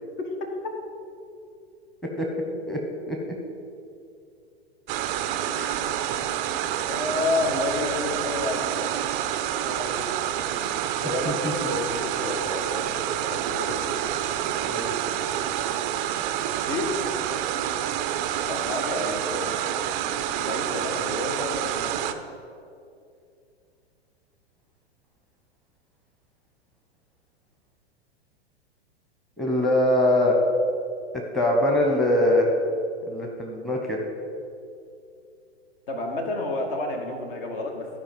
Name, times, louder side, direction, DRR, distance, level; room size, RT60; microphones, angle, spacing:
voice 1, 0.2-0.7 6.9-8.7 9.5-10.1 10.5-13.9 16.5-16.9 18.5-19.6 20.4-22.1 35.9-37.9, left 2 dB, 55° left, 2 dB, 1.7 m, -31 dB
sound 1, 4.9-22.1, right 11 dB, 25° right, 0.4 m, -28 dB
voice 2, 5.5-5.8 11.3-11.7 14.6-14.9 29.4-30.4 31.3-32.5 33.1-34.0, left 1 dB, ahead, 0 dB, 0.9 m, -23 dB
12.5 x 5.0 x 5.3 m, 2.5 s
figure-of-eight pair, 105°, 32 cm